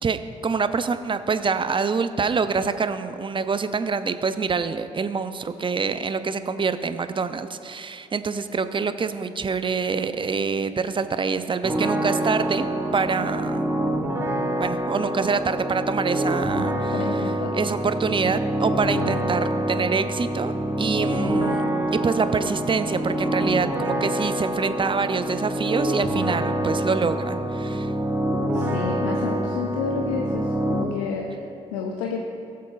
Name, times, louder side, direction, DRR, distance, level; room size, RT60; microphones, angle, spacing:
voice 1, 0.0-13.7 14.6-17.0 17.5-20.5 20.8-21.6 21.9-27.9, right 5 dB, 30° right, 11 dB, 0.6 m, -26 dB
sound 1, 11.6-30.8, right 1 dB, 15° right, 1.2 m, -26 dB
voice 2, 16.9-17.6 28.5-32.2, left 5 dB, 85° left, 1 dB, 0.6 m, -30 dB
16.0 x 7.4 x 2.5 m, 2.9 s
hypercardioid pair, 45°, 16 cm